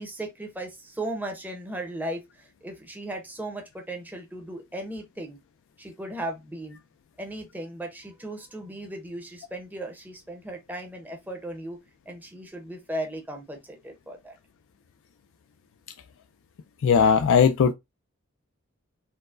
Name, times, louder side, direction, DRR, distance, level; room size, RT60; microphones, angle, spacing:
voice 1, 0.0-5.4 5.8-6.8 7.2-11.8 12.1-14.3, right 1 dB, 10° right, 0.6 m, -36 dB
voice 2, 16.8-17.7, left 6 dB, 65° left, 0.3 m, -18 dB
4.4 x 2.0 x 2.4 m
head